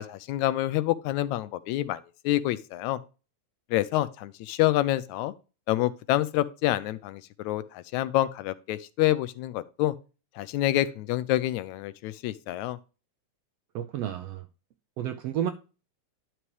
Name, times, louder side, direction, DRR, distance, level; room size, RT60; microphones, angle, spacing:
voice 1, 0.0-3.0 3.7-5.3 5.7-10.0 10.4-12.8, left 15 dB, 80° left, 1.9 m, -27 dB
voice 2, 13.7-14.4 15.0-15.5, right 10 dB, 75° right, 1.5 m, -31 dB
11.0 x 6.0 x 3.1 m
omnidirectional pair, 3.4 m